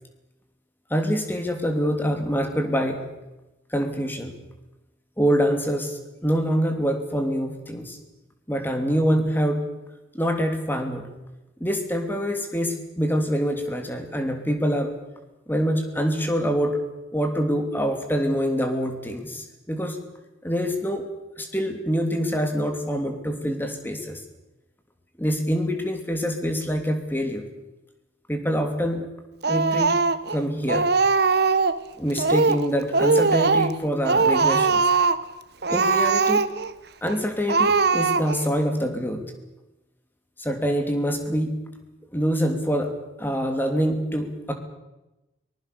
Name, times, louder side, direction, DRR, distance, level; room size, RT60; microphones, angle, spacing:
voice 1, 0.9-3.1 3.7-4.3 5.2-8.0 8.5-9.6 10.1-11.1 11.6-14.9 15.5-16.8 17.1-20.0 20.4-21.0 21.4-24.2 25.2-27.4 28.3-29.1 29.5-30.0 30.3-30.9 32.0-34.8 35.7-36.5 37.0-39.2 40.4-41.6 42.1-42.9 43.2-44.5, equal, 10° left, 5 dB, 2.8 m, -25 dB
Speech, 29.4-30.4 30.7-31.8 32.2-32.7 32.9-33.8 34.0-35.2 35.6-36.7 37.1-37.2 37.5-38.5, right 4 dB, 60° right, 1.0 m, -21 dB
24.0 x 20.0 x 6.9 m, 1.0 s
head